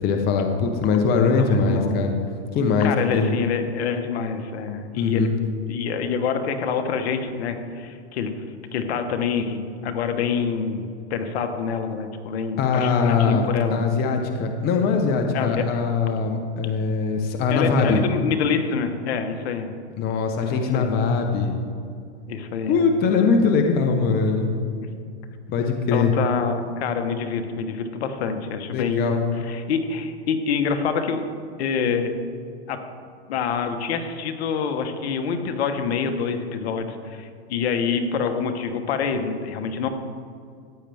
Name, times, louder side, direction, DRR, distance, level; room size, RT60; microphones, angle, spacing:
voice 1, 0.0-2.1 2.5-3.3 5.0-5.3 12.6-18.0 20.0-21.6 22.7-24.5 25.5-26.1 28.7-29.2, left 5 dB, 25° left, 4 dB, 0.9 m, -21 dB
voice 2, 1.4-2.0 2.8-5.3 5.7-8.3 8.7-13.8 15.3-15.7 17.5-19.7 20.4-21.0 22.3-22.9 25.9-31.2 31.6-32.1 32.7-32.8 33.3-39.9, left 6 dB, 65° left, 7 dB, 1.3 m, -26 dB
14.5 x 9.0 x 3.5 m, 2.3 s
hypercardioid pair, 140°, 34 cm